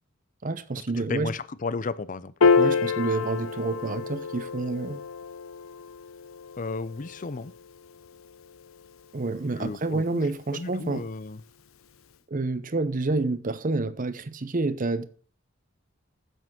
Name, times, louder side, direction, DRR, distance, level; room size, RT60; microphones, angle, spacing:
voice 1, 0.4-1.3 2.6-5.0 9.1-11.0 12.3-15.0, right 3 dB, 40° right, 0.8 m, -28 dB
voice 2, 1.1-2.3 6.6-7.5 9.6-10.2 10.5-11.4, left 3 dB, 40° left, 0.5 m, -33 dB
Piano, 2.4-9.0, left 4 dB, 80° left, 0.6 m, -28 dB
7.8 x 7.6 x 5.9 m
head